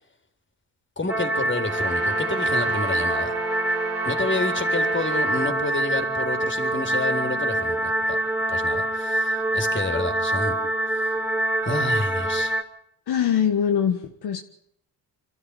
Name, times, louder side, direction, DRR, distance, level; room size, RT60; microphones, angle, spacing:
voice 1, 1.0-3.3 4.0-8.2 8.5-10.6 11.6-12.5, left 2 dB, 30° left, 4.0 m, -29 dB
sound 1, 1.1-12.6, right 1 dB, 5° right, 2.4 m, -25 dB
Brass instrument, 1.6-5.6, right 4 dB, 35° right, 1.2 m, -35 dB
voice 2, 13.1-14.4, left 8 dB, 70° left, 1.6 m, -22 dB
25.5 x 13.0 x 9.9 m
cardioid pair, 65°, 41 cm